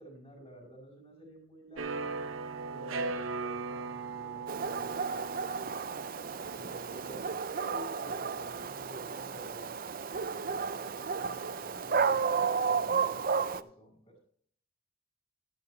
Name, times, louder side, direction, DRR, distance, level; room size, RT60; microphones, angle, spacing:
voice 1, 0.0-2.2 2.7-6.0 6.5-14.2, right 1 dB, 25° left, -8 dB, 4.7 m, -51 dB
sound 1, 1.8-7.4, right 4 dB, 75° right, 0.9 m, -39 dB
Dog, 4.5-13.6, right 5 dB, 40° right, 0.4 m, -33 dB
12.5 x 10.5 x 3.2 m, 0.63 s
head